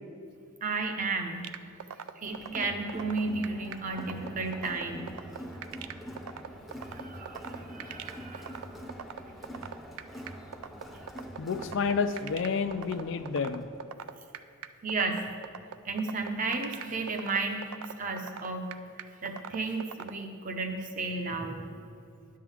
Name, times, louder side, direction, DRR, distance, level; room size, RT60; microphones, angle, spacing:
voice 1, 0.6-1.5 2.2-5.1 6.8-8.8 14.8-15.3 15.8-18.7 19.2-21.8, right 3 dB, 35° right, 4 dB, 0.7 m, -33 dB
sound 1, 1.4-20.1, right 8 dB, 85° right, 0.4 m, -40 dB
Crowd, 2.3-13.8, equal, ahead, 0.7 m, -44 dB
voice 2, 11.4-13.7, left 5 dB, 55° left, 10 dB, 0.4 m, -30 dB
10.0 x 3.7 x 7.2 m, 2.3 s
head